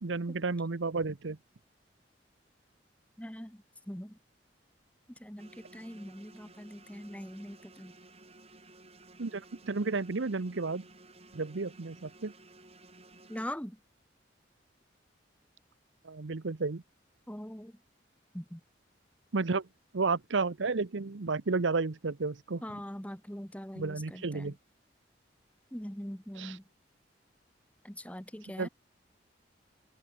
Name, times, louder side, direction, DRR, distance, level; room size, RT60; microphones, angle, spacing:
voice 1, 0.0-1.4 9.2-10.9 11.3-12.3 16.0-16.8 19.3-19.7 19.9-22.6 23.8-24.5 26.4-26.5 28.6-28.7, right 3 dB, 85° right, 0.9 m, -32 dB
voice 2, 3.2-4.2 5.1-7.9 13.3-13.8 17.3-17.8 18.3-18.6 22.6-24.6 25.7-26.6 27.8-28.7, equal, 5° left, 1.8 m, -42 dB
sound 1, 5.4-13.5, right 2 dB, 35° right, 8.0 m, -56 dB
open air
head